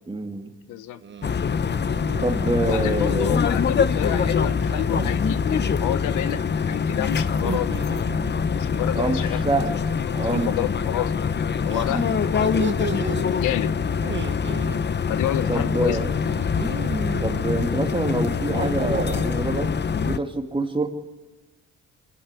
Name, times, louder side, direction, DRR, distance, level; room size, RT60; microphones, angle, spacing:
voice 1, 0.1-0.5 2.2-3.4 8.9-9.8 10.1-10.6 11.9-12.4 15.5-16.1 17.2-20.9, right 2 dB, 15° right, 5 dB, 2.4 m, -26 dB
voice 2, 0.7-1.0 2.6-8.0 8.6-9.4 9.7-9.8 10.2-11.1 11.7-12.5 13.0-13.9 15.1-16.0, left 12 dB, 85° left, 14 dB, 1.0 m, -29 dB
sound 1, 1.0-1.4 1.7-2.2 4.0-5.2 7.3-8.7 10.1-10.5 11.7-13.2 14.0-14.8 16.3-17.4 18.3-19.4, right 6 dB, 40° right, 1.2 m, -34 dB
sound 2, 1.2-20.2, left 6 dB, 35° left, 0.8 m, -24 dB
25.5 x 11.5 x 9.8 m, 1.2 s
cardioid pair, 90°, 30 cm